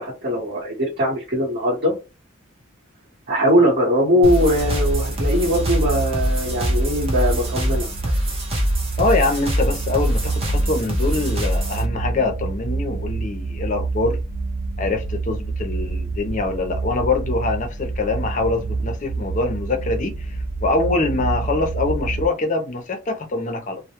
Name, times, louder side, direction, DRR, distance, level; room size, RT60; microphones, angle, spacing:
voice 1, 0.0-1.9 3.3-7.9, equal, 50° right, 1.0 m, -20 dB
sound 1, 4.2-11.8, equal, 30° right, 0.5 m, -24 dB
sound 2, 4.5-22.3, right 3 dB, 85° right, 0.6 m, -28 dB
voice 2, 9.0-14.2 14.8-23.8, left 3 dB, 35° left, 0.5 m, -24 dB
2.2 x 2.0 x 2.8 m
head